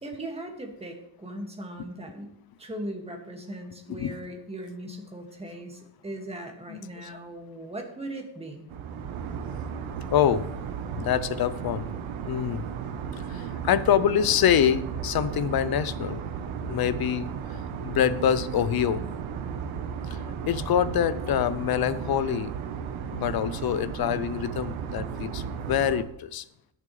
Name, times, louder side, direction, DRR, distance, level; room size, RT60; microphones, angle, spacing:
voice 1, 0.0-8.7, right 1 dB, 15° right, 2 dB, 2.1 m, -39 dB
voice 2, 6.7-7.1 10.1-10.5 11.0-11.9 12.3-12.6 13.2-16.2 16.6-19.0 20.1-22.5 23.1-26.4, left 9 dB, 50° left, 15 dB, 0.7 m, -26 dB
sound 1, 8.7-26.0, right 7 dB, 85° right, 1.2 m, -34 dB
20.5 x 7.4 x 3.3 m, 0.77 s
cardioid pair, 130°, 47 cm